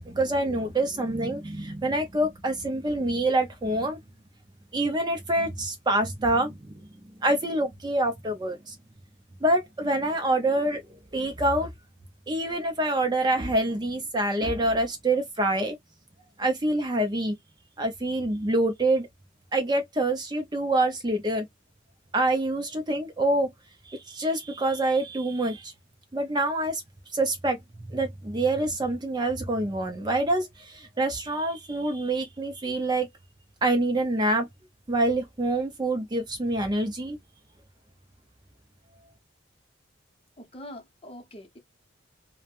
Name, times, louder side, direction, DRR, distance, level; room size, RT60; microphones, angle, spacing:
voice 1, 0.0-4.0 4.7-6.9 7.2-8.8 9.4-10.8 11.1-11.7 12.3-15.8 16.4-17.3 17.8-19.1 19.5-21.5 22.1-23.5 23.9-25.7 26.1-26.8 27.1-27.6 27.9-33.1 33.6-34.5 34.9-37.2, right 1 dB, 20° right, 0.5 m, -26 dB
voice 2, 40.4-41.6, left 1 dB, 30° left, 0.7 m, -44 dB
3.1 x 2.1 x 2.4 m
head